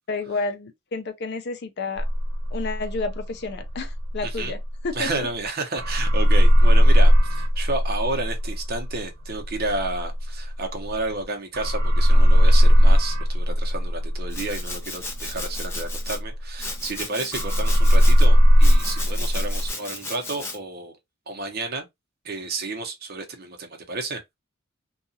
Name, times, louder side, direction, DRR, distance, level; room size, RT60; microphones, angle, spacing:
voice 1, 0.1-2.1 2.5-4.6 4.8-5.3, left 3 dB, 50° left, 0.5 m, -30 dB
sound 1, 2.0-5.5 5.8-11.2 11.5-17.0 17.3-19.7, equal, 90° right, 0.8 m, -18 dB
voice 2, 4.2-4.5 4.9-21.0 21.3-21.9 22.2-24.3, right 2 dB, 45° right, 0.7 m, -31 dB
Domestic sounds home sounds, 14.3-16.2 16.6-18.2 18.6-20.6, left 2 dB, 10° left, 0.7 m, -35 dB
2.8 x 2.3 x 2.6 m
head